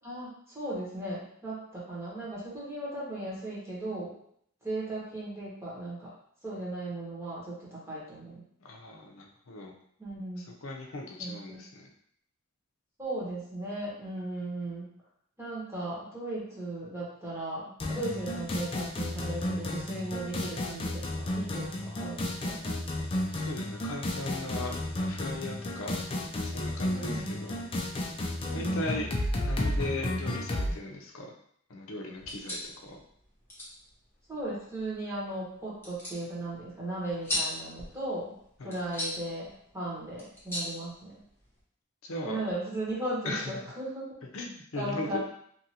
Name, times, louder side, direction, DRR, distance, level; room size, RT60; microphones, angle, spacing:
voice 1, 0.0-4.2 4.6-6.1 6.4-8.4 10.0-10.5 11.2-11.6 13.0-14.9 15.4-22.6 26.9-27.3 28.4-28.8 34.3-41.2 42.2-44.0 44.8-45.2, right 1 dB, 15° right, -8 dB, 1.1 m, -37 dB
voice 2, 8.6-9.7 10.4-11.9 23.3-26.0 26.4-27.5 28.5-29.1 29.4-31.3 31.7-33.0 38.6-38.8 42.0-42.4 43.2-43.6 44.3-45.2, left 2 dB, 70° left, 0 dB, 0.6 m, -38 dB
sound 1, 17.8-30.7, left 1 dB, 25° left, 0.4 m, -32 dB
sound 2, 32.1-41.6, left 1 dB, 10° left, 0.9 m, -40 dB
2.9 x 2.5 x 2.8 m, 0.66 s
head